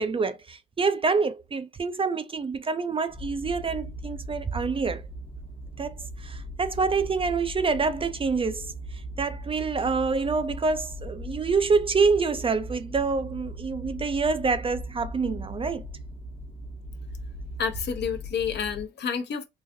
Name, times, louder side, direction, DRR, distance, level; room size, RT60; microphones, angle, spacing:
voice 1, 0.0-5.0 5.8-15.9, right 4 dB, 30° right, 0.4 m, -27 dB
sound 1, 3.1-18.8, equal, 25° left, 0.7 m, -39 dB
voice 2, 17.6-19.4, left 6 dB, 60° left, 0.8 m, -29 dB
3.9 x 2.5 x 2.6 m
cardioid pair, 90°, 20 cm